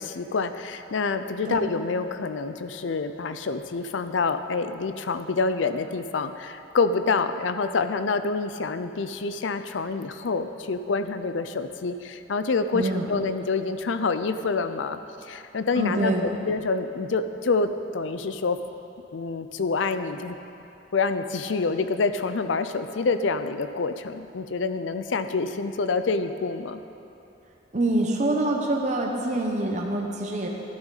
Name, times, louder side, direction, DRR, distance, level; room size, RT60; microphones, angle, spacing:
voice 1, 0.0-15.0 15.3-18.6 19.1-20.4 20.9-26.8, left 4 dB, 70° left, 10 dB, 0.5 m, -27 dB
voice 2, 12.7-13.1 15.7-16.3 27.7-30.5, right 1 dB, 40° right, 0 dB, 0.9 m, -25 dB
12.0 x 12.0 x 4.1 m, 2.9 s
head